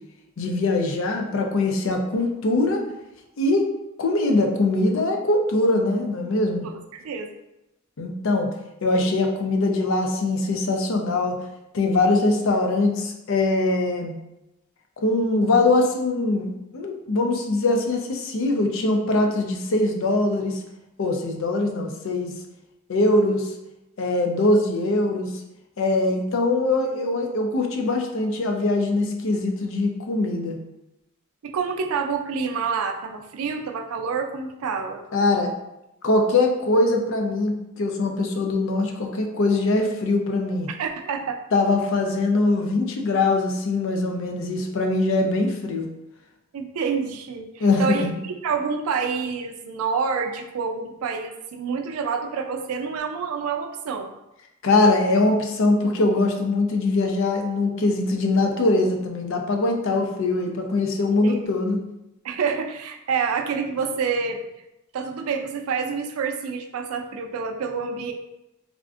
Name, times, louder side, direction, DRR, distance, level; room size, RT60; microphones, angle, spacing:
voice 1, 0.4-2.8 3.4-3.7 4.0-6.7 8.0-8.5 8.8-11.4 11.7-14.2 15.0-20.6 21.0-22.3 22.9-23.5 24.0-25.3 25.8-30.6 35.1-35.5 36.0-40.7 41.5-45.9 47.6-48.2 54.6-61.8, left 2 dB, 65° left, 3 dB, 0.5 m, -22 dB
voice 2, 6.6-7.3 31.4-35.0 40.7-41.4 46.5-54.1 61.2-61.5 62.2-64.4 64.9-68.1, right 5 dB, 90° right, 5 dB, 0.4 m, -28 dB
3.5 x 2.5 x 2.4 m, 0.90 s
head